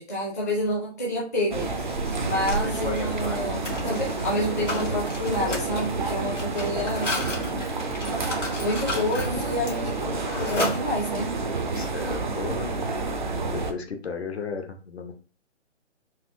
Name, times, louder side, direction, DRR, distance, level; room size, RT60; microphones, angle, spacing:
voice 1, 0.0-1.7 2.2-7.1 8.6-11.3, left 1 dB, 15° left, -6 dB, 0.5 m, -28 dB
sound 1, 1.5-13.7, right 3 dB, 45° right, 0.4 m, -29 dB
Mechanisms, 1.6-11.4, left 2 dB, 75° left, 1.7 m, -35 dB
voice 2, 2.4-2.8 6.2-6.6 11.7-12.7 13.3-15.1, left 5 dB, 60° left, 5 dB, 0.8 m, -35 dB
4.2 x 2.6 x 2.5 m, 0.37 s
figure-of-eight pair, 140°, 36 cm